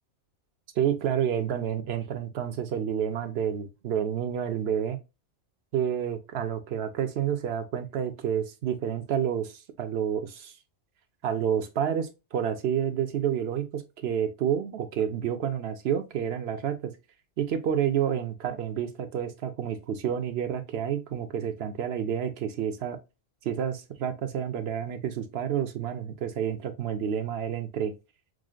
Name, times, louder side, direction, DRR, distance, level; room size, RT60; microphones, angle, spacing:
voice 1, 0.8-5.0 5.7-10.5 11.2-16.9 17.4-23.0 23.4-27.9, right 9 dB, 60° right, 0.8 m, -29 dB
6.1 x 2.0 x 2.3 m
omnidirectional pair, 1.3 m